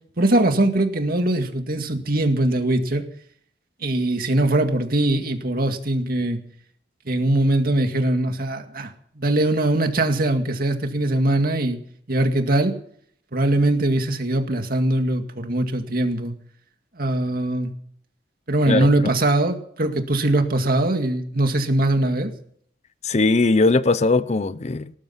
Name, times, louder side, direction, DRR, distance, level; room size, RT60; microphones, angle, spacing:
voice 1, 0.2-3.0 3.8-6.4 7.1-11.8 12.1-12.8 13.3-16.3 16.9-17.7 18.5-22.3, right 1 dB, 55° right, 2.1 m, -21 dB
voice 2, 23.0-24.9, left 3 dB, 40° left, 0.6 m, -19 dB
19.0 x 12.5 x 5.8 m
head